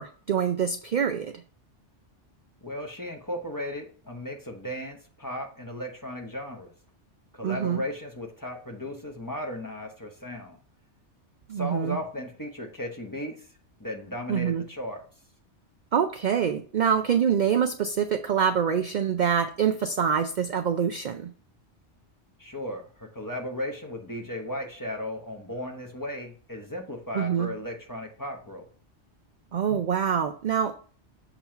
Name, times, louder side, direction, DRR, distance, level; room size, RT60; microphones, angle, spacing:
voice 1, 0.0-1.3 7.4-7.8 11.5-12.0 14.3-14.6 15.9-21.3 27.1-27.5 29.5-30.8, right 7 dB, 60° right, 8 dB, 0.5 m, -25 dB
voice 2, 2.6-6.7 7.3-10.6 11.6-13.5 13.8-15.0 22.4-28.7, left 1 dB, 20° left, 2 dB, 1.0 m, -36 dB
7.0 x 3.0 x 5.7 m, 0.42 s
omnidirectional pair, 1.2 m